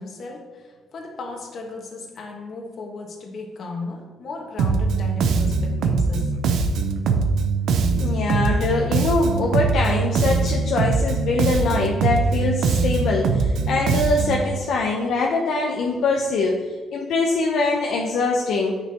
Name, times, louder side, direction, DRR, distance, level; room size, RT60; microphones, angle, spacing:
voice 1, 0.0-6.4, left 3 dB, 60° left, 2 dB, 1.4 m, -35 dB
Bass guitar, 4.6-14.5, right 4 dB, 80° right, 0.7 m, -22 dB
voice 2, 8.0-16.6 16.9-18.8, left 3 dB, 75° left, 0 dB, 0.7 m, -23 dB
9.7 x 5.9 x 2.9 m, 1.4 s
cardioid pair, 90°, 0 cm